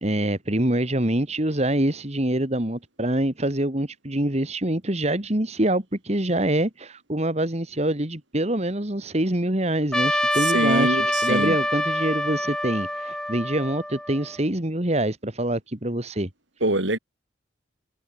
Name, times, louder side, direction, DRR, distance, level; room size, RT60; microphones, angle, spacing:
voice 1, 0.0-16.3, right 1 dB, 35° right, 2.1 m, -25 dB
Trumpet, 9.9-14.4, left 1 dB, 5° left, 5.2 m, -26 dB
voice 2, 10.4-11.6 16.6-17.0, right 1 dB, 75° right, 5.3 m, -24 dB
head